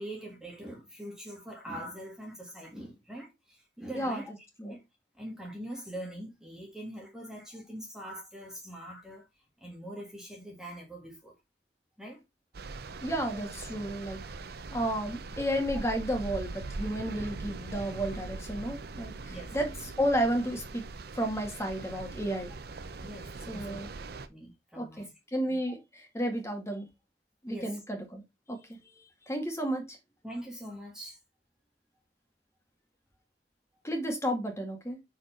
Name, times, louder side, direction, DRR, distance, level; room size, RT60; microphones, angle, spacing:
voice 1, 0.0-4.3 4.6-4.8 5.1-9.3 9.6-11.4 12.0-12.2 19.3-19.5 23.0-25.1 25.5-25.6 27.5-27.8 30.2-31.2, right 1 dB, 5° right, 1.5 m, -43 dB
sound 1, 12.5-24.3, right 3 dB, 60° right, 0.7 m, -41 dB
voice 2, 13.0-14.2 14.7-20.8 21.1-22.5 23.5-23.9 24.8-25.1 25.3-26.9 27.4-28.2 28.5-30.0 33.8-35.0, equal, 15° left, 1.9 m, -32 dB
6.3 x 4.5 x 4.4 m
head